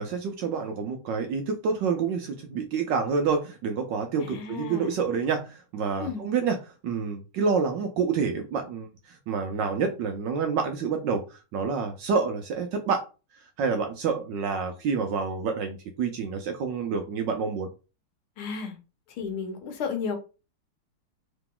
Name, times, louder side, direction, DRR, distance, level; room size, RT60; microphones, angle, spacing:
voice 1, 0.0-6.6 6.8-13.1 13.6-17.7, right 5 dB, 75° right, 1.1 m, -28 dB
voice 2, 4.2-5.0 6.0-6.2 18.4-18.8 19.2-20.1, left 5 dB, 75° left, 1.8 m, -33 dB
3.8 x 2.9 x 3.7 m
omnidirectional pair, 2.4 m